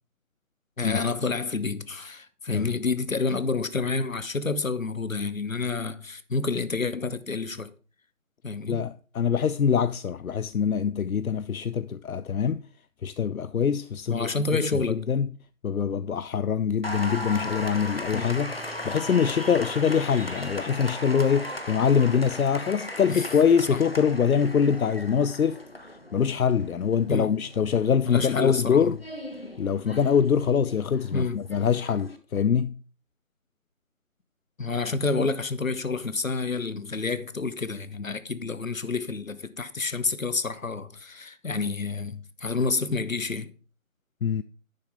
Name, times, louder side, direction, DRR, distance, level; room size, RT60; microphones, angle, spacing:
voice 1, 0.8-7.7 8.4-8.8 14.1-15.0 18.1-18.4 23.1-23.3 23.7-23.8 27.1-27.4 28.0-29.0 31.1-31.5 34.6-43.5, left 4 dB, 70° left, 0.9 m, -29 dB
voice 2, 8.7-12.6 13.0-14.3 14.9-15.3 15.6-18.5 18.8-25.6 26.1-29.0 29.6-32.8 44.2-44.4, left 7 dB, 85° left, 0.5 m, -24 dB
Applause, 16.8-32.2, left 1 dB, 45° left, 1.0 m, -37 dB
Keyboard (musical), 18.3-21.4, right 3 dB, 70° right, 2.1 m, -53 dB
10.5 x 6.6 x 3.8 m
figure-of-eight pair, 175°, 41 cm